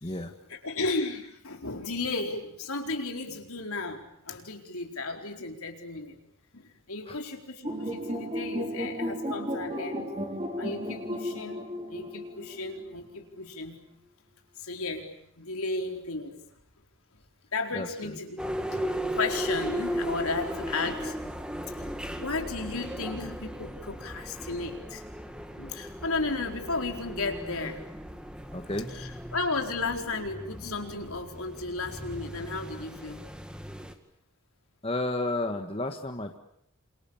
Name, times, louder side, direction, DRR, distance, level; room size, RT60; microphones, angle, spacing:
voice 1, 0.5-6.2 6.5-6.6 6.9-10.1 10.6-11.6 11.9-13.8 14.6-15.1 15.4-16.3 17.5-18.4 18.7-18.9 19.1-21.2 22.2-25.0 25.6-27.8 28.9-33.2, left 3 dB, 75° left, 3 dB, 4.6 m, -34 dB
sound 1, 7.6-13.0, equal, 25° right, 5.4 m, -34 dB
voice 2, 17.7-18.2 28.5-28.9 34.8-36.4, left 2 dB, 25° left, 4 dB, 1.6 m, -32 dB
Budapest metro, 18.4-33.9, equal, 5° right, 1.9 m, -37 dB
28.5 x 27.5 x 7.3 m, 0.74 s
head